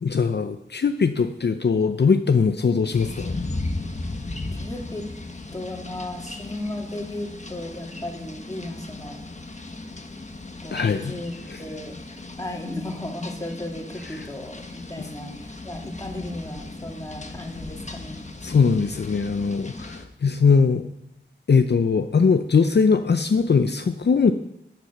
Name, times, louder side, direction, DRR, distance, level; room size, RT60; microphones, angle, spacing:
voice 1, 0.0-3.4 10.7-11.1 11.5-11.6 14.1-14.3 15.0-15.1 18.4-20.9 21.5-24.3, left 5 dB, 60° left, 8 dB, 0.6 m, -21 dB
sound 1, 2.9-20.1, left 2 dB, 35° left, 1.3 m, -36 dB
voice 2, 4.5-5.0 5.5-9.2 10.6-11.9 12.4-18.2, left 1 dB, 20° left, 0 dB, 2.9 m, -35 dB
11.5 x 9.5 x 5.8 m, 0.83 s
wide cardioid pair, 50°, 19 cm